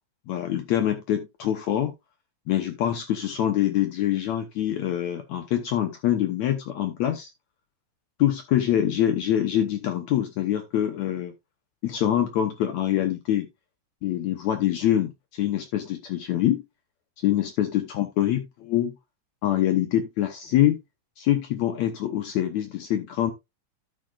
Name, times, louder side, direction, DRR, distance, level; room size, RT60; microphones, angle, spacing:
voice 1, 0.3-1.9 2.5-7.3 8.2-11.3 11.8-13.5 14.0-16.6 17.2-18.9 19.4-20.8 21.2-23.3, left 12 dB, 70° left, 2.0 m, -25 dB
12.5 x 7.6 x 2.4 m
omnidirectional pair, 3.7 m